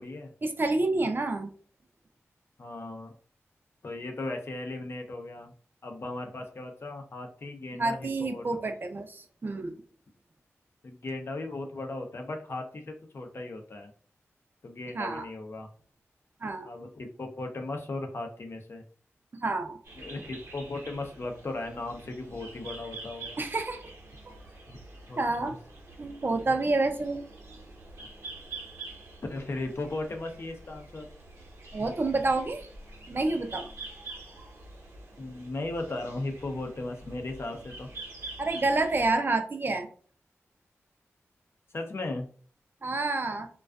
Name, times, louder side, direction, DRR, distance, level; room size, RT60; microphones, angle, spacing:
voice 1, 0.4-1.5 7.7-9.7 14.9-15.3 16.4-16.7 19.4-19.8 23.4-23.8 24.3-24.4 25.2-25.5 26.0-27.2 31.7-32.7 33.1-33.7 38.4-39.9 42.8-43.5, right 2 dB, 45° right, 5 dB, 0.5 m, -28 dB
voice 2, 2.6-3.1 3.8-5.5 5.8-8.7 10.8-13.9 14.6-15.7 16.6-18.8 20.0-23.4 24.7-24.8 25.1-25.5 29.3-31.1 35.2-37.9 41.7-42.3, left 2 dB, 55° left, 3 dB, 0.5 m, -37 dB
sound 1, 19.8-39.2, right 3 dB, 75° right, 0.9 m, -46 dB
2.4 x 2.3 x 2.3 m, 0.44 s
cardioid pair, 60°, 5 cm